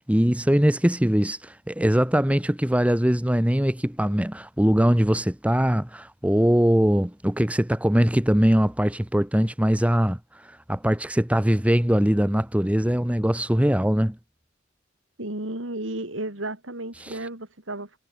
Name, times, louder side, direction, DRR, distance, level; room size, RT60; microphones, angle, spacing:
voice 1, 0.0-14.2 17.0-17.2, equal, 5° right, 1.0 m, -22 dB
voice 2, 15.2-18.0, right 1 dB, 75° right, 4.7 m, -33 dB
head